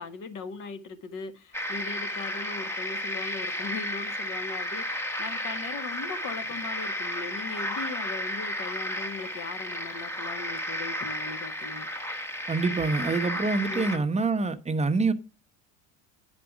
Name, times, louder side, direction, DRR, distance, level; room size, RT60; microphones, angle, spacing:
voice 1, 0.0-11.9 13.7-14.0, left 4 dB, 45° left, 1.8 m, -39 dB
sound 1, 1.5-14.0, left 1 dB, 5° left, 1.2 m, -33 dB
voice 2, 12.5-15.1, right 3 dB, 15° right, 0.9 m, -26 dB
10.0 x 5.1 x 6.0 m
supercardioid pair, 105°, 42 cm